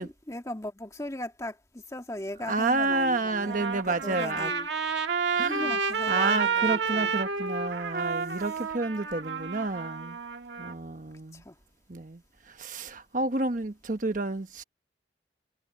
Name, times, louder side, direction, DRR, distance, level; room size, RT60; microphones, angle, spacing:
voice 1, 0.0-4.7 5.5-7.1 8.3-8.4 11.3-11.6, left 1 dB, 15° left, 2.0 m, -38 dB
voice 2, 2.5-4.5 5.3-5.8 6.1-10.2 10.6-11.4 11.9-12.2 12.5-14.6, right 3 dB, 45° right, 1.2 m, -30 dB
Trumpet, 3.3-10.7, right 5 dB, 75° right, 1.5 m, -30 dB
head